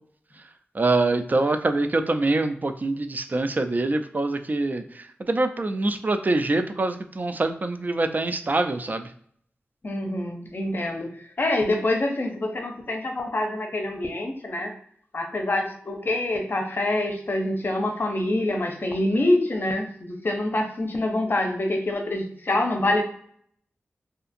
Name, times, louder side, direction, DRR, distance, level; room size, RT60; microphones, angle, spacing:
voice 1, 0.7-9.1, right 2 dB, 40° right, 8 dB, 0.3 m, -24 dB
voice 2, 9.8-14.8 15.1-23.0, left 1 dB, 50° left, 3 dB, 0.6 m, -26 dB
2.7 x 2.4 x 2.5 m, 0.62 s
cardioid pair, 45°, 4 cm